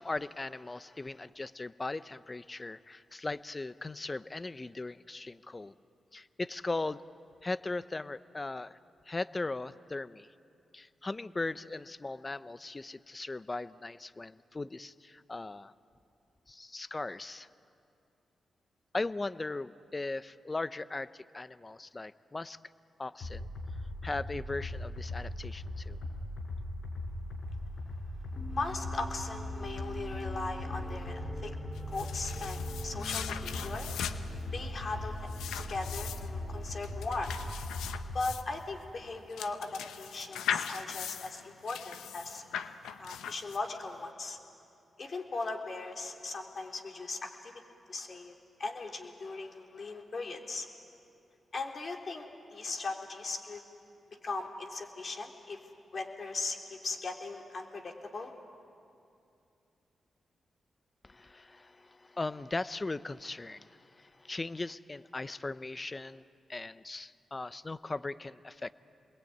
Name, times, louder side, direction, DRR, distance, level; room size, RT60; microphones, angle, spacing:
voice 1, 0.0-5.7 6.1-7.0 7.4-8.8 9.0-10.3 10.7-15.7 16.5-17.5 18.9-22.6 23.0-23.5 24.0-26.0 61.0-66.2 66.5-68.7, left 2 dB, 35° left, 15 dB, 0.8 m, -38 dB
sound 1, 23.2-38.2, left 2 dB, 70° left, 5.6 m, -39 dB
sound 2, 28.3-37.5, right 2 dB, ahead, 2.2 m, -47 dB
voice 2, 28.5-31.6 31.9-33.9 34.5-35.3 35.6-37.3 38.1-42.4 43.0-44.4 45.0-47.5 47.9-48.3 48.6-50.7 51.5-52.3 52.5-53.6 54.2-55.6 55.9-58.3, left 3 dB, 55° left, 2 dB, 3.6 m, -38 dB
sound 3, 31.7-43.9, left 8 dB, 90° left, 0.9 m, -40 dB
28.5 x 21.5 x 9.4 m, 2.6 s
supercardioid pair, 45°, 0 cm